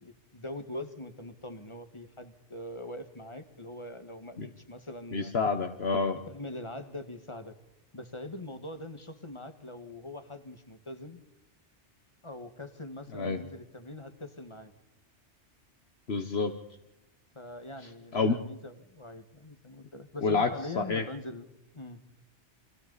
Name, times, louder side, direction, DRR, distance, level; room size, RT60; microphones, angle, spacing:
voice 1, 0.0-5.3 6.3-7.6 7.9-11.2 12.2-14.7 17.4-21.5 21.7-22.0, left 1 dB, 25° left, 8 dB, 1.8 m, -42 dB
voice 2, 5.1-6.2 13.1-13.4 16.1-16.6 18.1-18.4 20.2-21.0, left 4 dB, 60° left, 6 dB, 1.4 m, -28 dB
29.5 x 24.0 x 4.1 m, 0.93 s
omnidirectional pair, 1.2 m